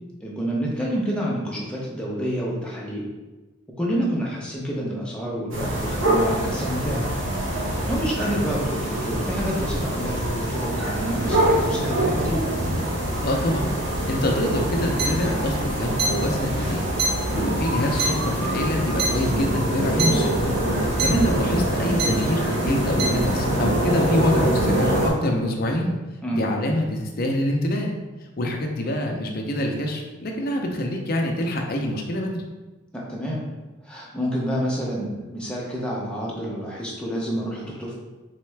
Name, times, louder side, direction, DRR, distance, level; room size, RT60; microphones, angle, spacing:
voice 1, 0.2-3.1 3.8-7.1 7.5-12.4 21.0-21.3 26.2-26.5 32.9-33.4 33.8-37.9, equal, 5° left, -4 dB, 0.7 m, -28 dB
sound 1, 5.5-25.1, right 1 dB, 65° right, 1.0 m, -24 dB
voice 2, 13.2-13.8 14.1-16.8 17.3-20.5 21.0-25.9 26.3-27.9 28.4-32.4, left 1 dB, 45° left, 1 dB, 0.5 m, -25 dB
sound 2, 15.0-15.1 16.0-16.1 17.0-17.1 18.0-18.1 19.0-19.1 20.0-20.1 21.0-21.1 22.0-22.1 23.0-23.1, right 5 dB, 50° right, 0.4 m, -22 dB
3.6 x 3.3 x 3.2 m, 1.1 s
head